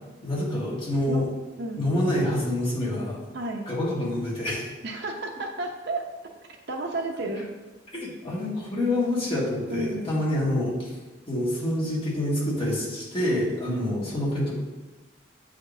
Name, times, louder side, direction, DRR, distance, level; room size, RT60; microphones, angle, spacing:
voice 1, 0.2-1.2 1.8-3.2 3.7-4.7 7.9-10.9 11.3-14.5, left 1 dB, 30° left, -6 dB, 1.8 m, -27 dB
voice 2, 3.3-3.7 4.8-6.0 6.7-7.5 9.7-10.1 13.7-14.1, right 2 dB, 60° right, 3 dB, 0.7 m, -31 dB
7.8 x 5.1 x 2.6 m, 1.2 s
head